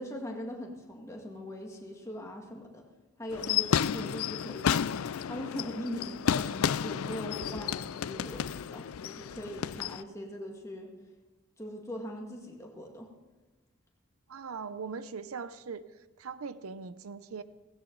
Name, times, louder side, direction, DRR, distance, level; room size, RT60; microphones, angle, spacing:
voice 1, 0.0-2.8 3.2-5.0 5.3-10.9 11.6-13.1, left 1 dB, 15° left, 1.9 m, -41 dB
sound 1, 3.3-10.0, left 8 dB, 85° left, 0.4 m, -32 dB
voice 2, 14.3-15.9 16.2-17.4, right 5 dB, 90° right, 0.6 m, -40 dB
17.0 x 16.0 x 3.9 m
head